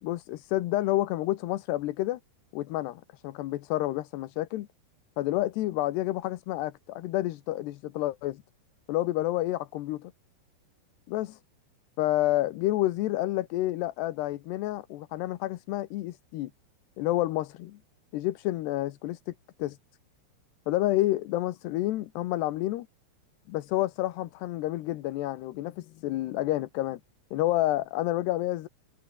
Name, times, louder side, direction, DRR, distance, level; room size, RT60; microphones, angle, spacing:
voice 1, 0.0-2.2 2.5-4.7 5.2-8.4 8.9-10.1 11.1-11.4 12.0-16.5 17.0-17.8 18.1-19.3 19.6-19.8 20.7-22.9 23.5-27.0 27.3-28.7, left 16 dB, 75° left, 3.1 m, -29 dB
omnidirectional pair, 5.0 m